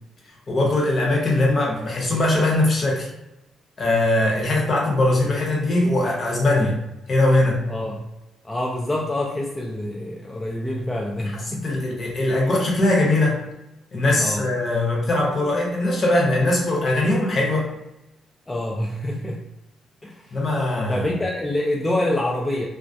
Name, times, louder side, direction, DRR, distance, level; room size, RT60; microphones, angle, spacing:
voice 1, 0.5-3.1 3.8-6.8 7.1-7.6 11.3-13.4 13.9-17.7 20.3-21.2, left 2 dB, 45° left, -2 dB, 0.8 m, -21 dB
voice 2, 7.7-8.0 8.4-11.7 14.2-14.5 18.5-19.4 20.0-20.4 20.9-22.7, left 1 dB, 15° left, -2 dB, 0.3 m, -26 dB
2.3 x 2.0 x 2.6 m, 0.94 s
cardioid pair, 90°, 0 cm